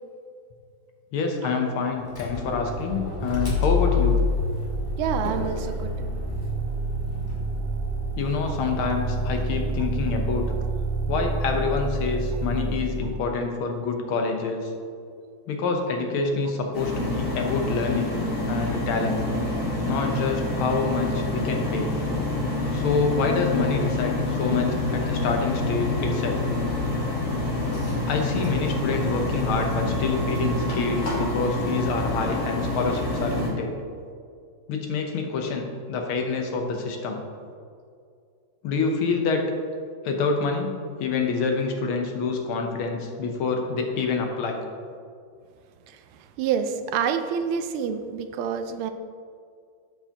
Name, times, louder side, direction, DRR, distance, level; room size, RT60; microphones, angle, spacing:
voice 1, 1.1-4.2 8.2-10.5 11.1-14.7 15.5-18.1 18.5-19.2 19.9-21.9 22.7-26.4 28.1-33.8 34.7-37.2 38.6-39.4 40.0-44.6, left 4 dB, 80° left, 3 dB, 1.8 m, -27 dB
Motor vehicle (road), 2.1-13.2, equal, 10° left, 1.6 m, -27 dB
voice 2, 5.0-5.9 8.5-8.6 9.8-9.9 45.9-48.9, right 7 dB, 85° right, 8 dB, 1.5 m, -28 dB
sound 1, 16.7-33.5, left 2 dB, 55° left, 2.2 m, -27 dB
12.5 x 4.8 x 2.9 m, 2.2 s
omnidirectional pair, 2.3 m